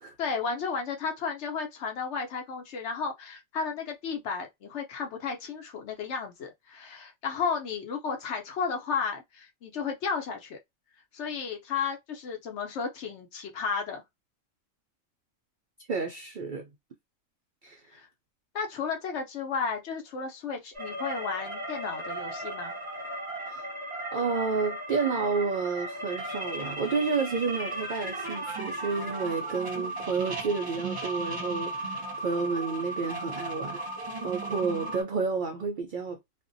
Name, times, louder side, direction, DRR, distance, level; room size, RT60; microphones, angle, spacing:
voice 1, 0.2-10.6 11.1-14.0 17.9-18.1 18.5-22.8, left 5 dB, 65° left, 0.9 m, -33 dB
voice 2, 15.9-16.6 17.6-17.8 23.5-23.6 24.1-33.8 34.2-36.2, right 4 dB, 70° right, 0.4 m, -30 dB
sound 1, 20.7-35.0, right 1 dB, 30° right, 0.8 m, -36 dB
2.5 x 2.1 x 2.5 m
omnidirectional pair, 1.4 m